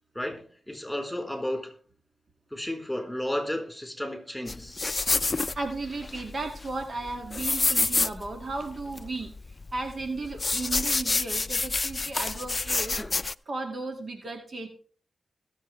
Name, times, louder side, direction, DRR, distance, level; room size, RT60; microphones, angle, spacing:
voice 1, 0.1-1.7 2.5-4.8 12.7-13.1, left 1 dB, 5° left, 4.3 m, -33 dB
sound 1, 4.5-13.3, left 3 dB, 40° left, 0.4 m, -28 dB
voice 2, 5.3-13.0 13.5-14.7, right 3 dB, 55° right, 2.2 m, -35 dB
21.5 x 7.4 x 3.4 m
cardioid pair, 45°, 0 cm